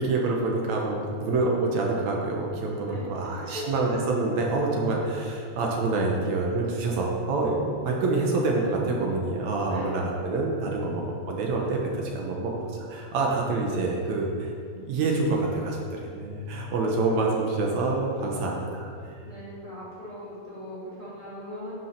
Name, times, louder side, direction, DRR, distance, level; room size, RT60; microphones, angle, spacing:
voice 1, 0.0-19.2, right 3 dB, 75° right, -1 dB, 2.4 m, -27 dB
voice 2, 2.8-3.7 4.9-5.0 9.7-10.0 10.8-11.0 19.0-21.7, left 1 dB, 15° left, -9 dB, 2.8 m, -40 dB
9.7 x 6.3 x 5.8 m, 2.2 s
omnidirectional pair, 3.3 m